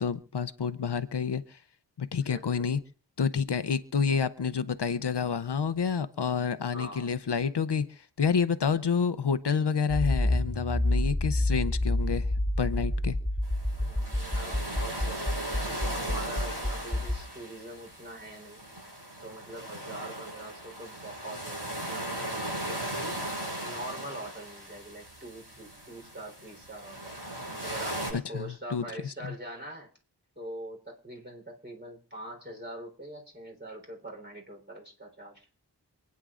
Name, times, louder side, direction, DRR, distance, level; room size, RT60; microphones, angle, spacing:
voice 1, 0.0-1.6 2.0-2.8 3.2-12.3 12.6-13.1 28.1-28.8 29.2-29.3, left 6 dB, 75° left, 13 dB, 0.7 m, -29 dB
voice 2, 2.2-2.6 6.7-7.1 13.8-18.6 19.2-23.1 23.6-27.1 27.6-29.9 30.4-35.5, right 1 dB, 25° right, 0 dB, 3.8 m, -43 dB
Accelerating revving vroom, 9.9-17.2, left 1 dB, 15° left, 2.8 m, -28 dB
sound 1, 13.4-28.1, right 1 dB, 80° right, 7.7 m, -38 dB
27.5 x 9.6 x 2.5 m, 0.40 s
wide cardioid pair, 40°, 41 cm